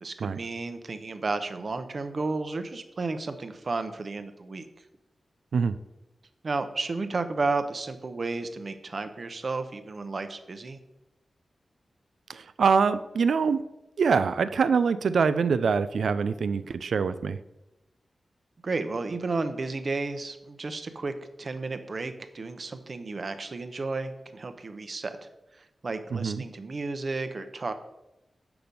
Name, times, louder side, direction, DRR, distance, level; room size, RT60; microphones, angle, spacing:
voice 1, 0.0-4.7 6.4-10.8 18.6-21.1 21.4-25.2 25.8-27.7, right 3 dB, 60° right, 9 dB, 0.8 m, -32 dB
voice 2, 12.3-13.6 14.0-17.4 26.1-26.4, right 5 dB, 85° right, 13 dB, 0.3 m, -24 dB
6.7 x 5.9 x 5.2 m, 0.95 s
cardioid pair, 40°, 0 cm